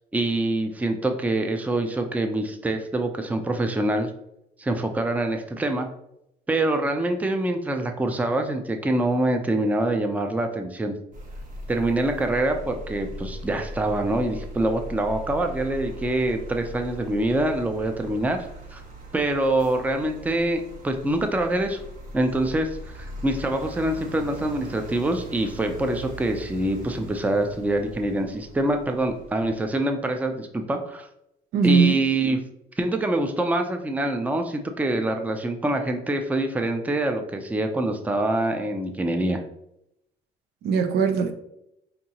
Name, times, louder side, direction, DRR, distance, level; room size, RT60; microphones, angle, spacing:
voice 1, 0.1-4.1 4.6-5.9 6.5-10.9 11.7-18.5 18.7-18.8 19.1-21.8 22.1-31.1 31.6-32.4 32.8-39.4, right 1 dB, 10° right, 0.4 m, -25 dB
sound 1, 11.1-29.7, right 1 dB, 50° right, 1.1 m, -40 dB
voice 2, 31.5-32.0 40.6-41.3, right 6 dB, 75° right, 0.6 m, -20 dB
5.1 x 2.7 x 2.9 m
cardioid pair, 110°, 17 cm